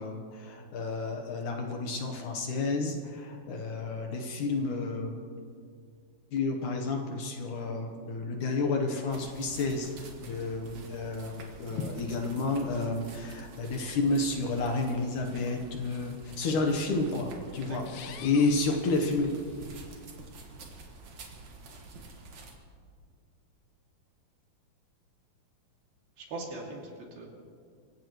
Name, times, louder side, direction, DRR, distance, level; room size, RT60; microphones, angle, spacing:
voice 1, 0.0-5.1 6.3-19.3, left 3 dB, 65° left, 3 dB, 2.3 m, -31 dB
sound 1, 9.1-22.5, right 2 dB, 55° right, 2.7 m, -48 dB
voice 2, 17.6-18.0 26.2-27.3, right 2 dB, 75° right, -1 dB, 4.4 m, -41 dB
sound 2, 17.8-19.8, left 9 dB, 85° left, 2.8 m, -48 dB
26.0 x 16.0 x 3.1 m, 2.2 s
omnidirectional pair, 4.3 m